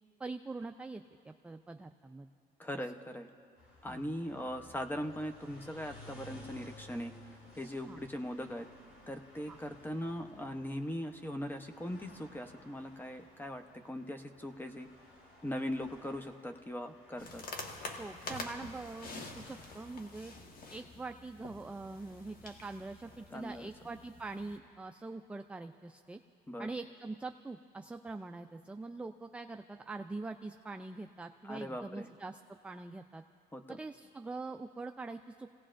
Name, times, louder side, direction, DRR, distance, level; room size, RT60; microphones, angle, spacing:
voice 1, 0.2-2.3 3.9-4.0 7.9-8.0 9.5-9.6 18.0-19.1 19.4-20.3 20.7-26.2 26.6-33.2 33.7-35.5, right 3 dB, 5° right, 6 dB, 0.3 m, -44 dB
voice 2, 2.6-3.3 3.8-7.1 7.5-8.7 9.1-14.9 15.4-17.4 23.3-23.7 26.5-26.7 31.4-32.1 33.5-33.8, equal, 10° left, 7 dB, 0.8 m, -40 dB
sound 1, 3.6-20.0, left 1 dB, 85° left, 5.1 m, -57 dB
sound 2, 17.2-24.6, left 3 dB, 55° left, 1.5 m, -47 dB
28.5 x 17.5 x 2.5 m, 2.4 s
cardioid pair, 110°, 17 cm